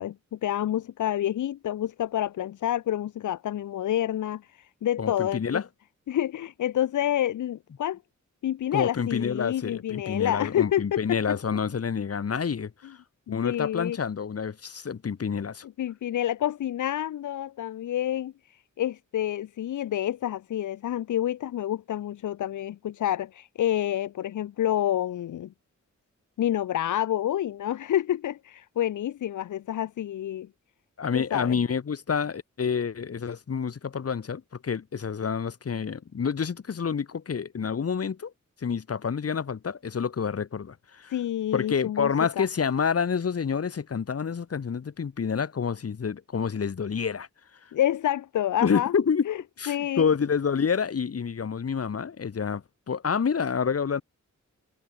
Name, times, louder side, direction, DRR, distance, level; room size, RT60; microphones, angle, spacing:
voice 1, 0.0-5.6 6.1-8.0 8.4-11.4 13.3-14.0 15.8-18.3 18.8-25.5 26.4-30.5 31.1-31.6 41.1-42.1 42.4-42.5 47.7-48.9 49.3-49.4 49.7-50.1, left 11 dB, 90° left, 0.5 m, -28 dB
voice 2, 5.0-5.6 8.7-13.0 13.3-15.6 31.0-38.3 38.6-41.1 41.5-47.3 48.6-49.3 49.6-54.0, left 6 dB, 55° left, 1.6 m, -28 dB
wide cardioid pair, 165°, 30 cm